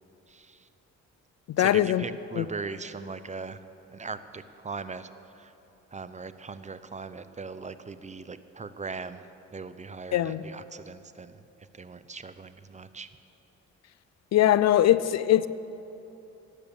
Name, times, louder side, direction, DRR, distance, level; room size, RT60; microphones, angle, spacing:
voice 1, 0.3-0.6 1.6-3.6 3.9-5.1 5.3-5.5 5.9-9.2 9.5-11.4 11.7-13.1, right 4 dB, 25° right, 12 dB, 0.7 m, -39 dB
voice 2, 1.5-2.0 2.4-2.5 10.1-10.4 14.3-15.5, left 12 dB, 60° left, 16 dB, 0.5 m, -21 dB
17.5 x 9.6 x 7.1 m, 2.9 s
cardioid pair, 90°, 30 cm